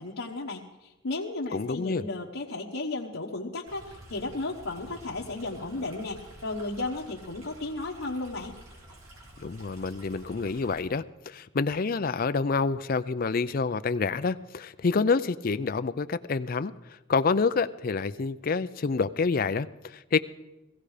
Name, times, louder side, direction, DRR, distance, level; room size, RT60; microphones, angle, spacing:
voice 1, 0.0-8.5, left 2 dB, 85° left, -3 dB, 1.2 m, -34 dB
voice 2, 1.5-2.0 9.4-16.7 17.1-20.2, left 4 dB, 45° left, 12 dB, 0.4 m, -27 dB
Stream, 3.7-10.8, right 1 dB, 90° right, 4.4 m, -50 dB
17.0 x 15.5 x 5.0 m, 1.0 s
head